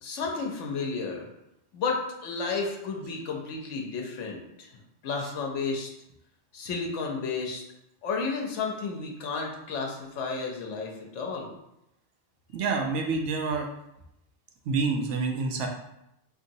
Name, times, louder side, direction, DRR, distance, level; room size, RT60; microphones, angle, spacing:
voice 1, 0.0-1.3 1.7-4.7 5.0-5.9 6.5-7.6 8.0-11.5, left 4 dB, 90° left, 1 dB, 1.0 m, -32 dB
voice 2, 12.5-13.7 14.7-15.7, right 4 dB, 85° right, 3 dB, 0.9 m, -27 dB
3.8 x 2.9 x 2.6 m, 0.83 s
omnidirectional pair, 1.2 m